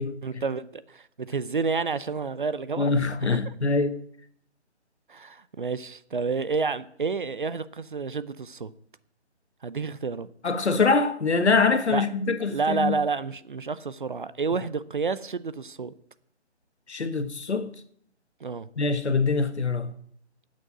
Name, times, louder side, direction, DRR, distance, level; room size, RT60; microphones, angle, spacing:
voice 1, 0.2-3.5 5.1-8.7 9.6-10.3 11.9-12.1 12.5-15.9 18.4-18.7, right 4 dB, 45° right, 0.7 m, -30 dB
voice 2, 2.8-4.0 10.4-13.0 16.9-17.7 18.8-19.9, left 4 dB, 70° left, 1.5 m, -24 dB
9.7 x 8.4 x 9.3 m
figure-of-eight pair, 160°, 35 cm